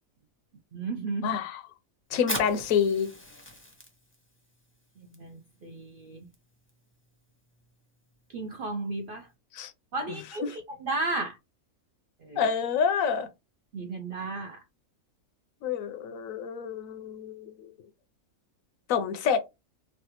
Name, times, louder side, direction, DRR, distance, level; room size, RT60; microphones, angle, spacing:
voice 1, 0.7-1.4 2.1-2.2 5.0-6.3 8.3-9.3 9.9-11.4 12.2-12.5 13.7-14.6, right 3 dB, 65° right, 0.5 m, -34 dB
voice 2, 1.2-1.6 2.1-3.1 9.5-9.7 12.4-13.3 15.6-17.7 18.9-19.5, left 7 dB, 75° left, 1.0 m, -27 dB
Fire, 2.1-9.3, equal, 10° left, 0.7 m, -43 dB
3.2 x 2.3 x 2.9 m
omnidirectional pair, 1.5 m